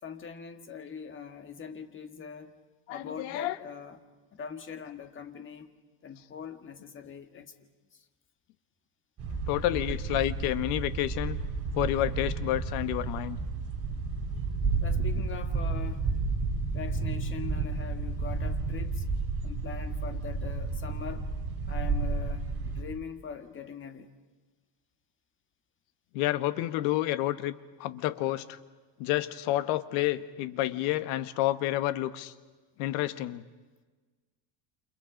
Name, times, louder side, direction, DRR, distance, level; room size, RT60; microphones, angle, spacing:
voice 1, 0.0-2.6 2.9-4.0 4.3-5.7 6.0-7.5 7.9-8.1 14.8-16.1 16.7-19.0 19.4-21.3 21.7-24.1, left 6 dB, 25° left, 1.9 m, -42 dB
voice 2, 2.9-3.6 9.5-11.4 11.7-13.4 26.1-28.6 29.0-32.3 32.8-33.4, left 14 dB, 75° left, 1.5 m, -29 dB
sound 1, 9.2-22.8, right 4 dB, 30° right, 3.9 m, -31 dB
29.0 x 28.5 x 5.3 m
cardioid pair, 145°, 47 cm